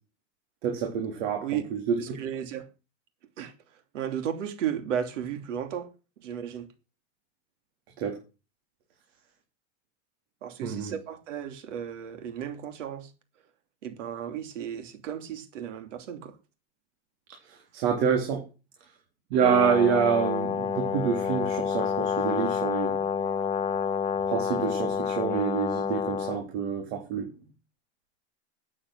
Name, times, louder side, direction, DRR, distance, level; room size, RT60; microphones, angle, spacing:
voice 1, 0.6-2.2 8.0-8.2 10.6-10.9 17.7-18.4 19.3-23.0 24.3-27.3, right 7 dB, 55° right, 3.5 m, -27 dB
voice 2, 2.0-2.7 3.4-3.5 3.9-5.9 6.2-6.7 10.4-13.1 13.8-16.4, right 9 dB, 80° right, 3.1 m, -34 dB
Brass instrument, 19.4-26.4, left 7 dB, 15° left, 0.8 m, -28 dB
13.0 x 8.7 x 6.3 m
supercardioid pair, 150°, 37 cm